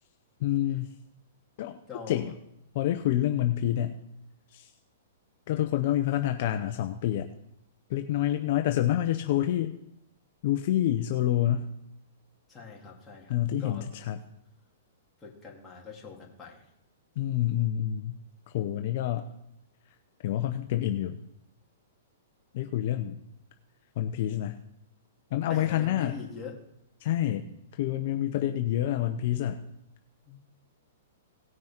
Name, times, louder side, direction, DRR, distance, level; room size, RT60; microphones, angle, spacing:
voice 1, 0.4-0.9 1.6-1.8 2.1-2.3 2.7-4.0 4.5-4.7 5.5-7.3 7.9-9.7 10.4-11.7 13.3-14.2 17.2-18.2 18.5-19.3 20.2-21.2 22.5-23.2 24.0-24.6 25.3-26.2 27.0-27.5 27.8-29.6, left 12 dB, 50° left, 7 dB, 0.7 m, -27 dB
voice 2, 1.9-2.3 12.5-14.0 15.2-16.6 25.5-26.5 30.3-30.4, left 5 dB, 15° left, -3 dB, 2.8 m, -43 dB
18.0 x 6.1 x 4.5 m, 0.79 s
hypercardioid pair, 145°, 0 cm